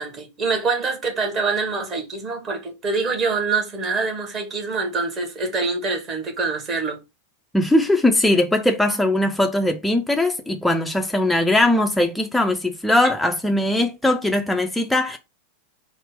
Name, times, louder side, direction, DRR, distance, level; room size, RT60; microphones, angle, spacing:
voice 1, 0.0-7.0, right 4 dB, 30° right, 1.0 m, -25 dB
voice 2, 7.5-15.2, left 1 dB, 5° left, 0.4 m, -20 dB
3.8 x 2.0 x 3.7 m
figure-of-eight pair, 90°, 0 cm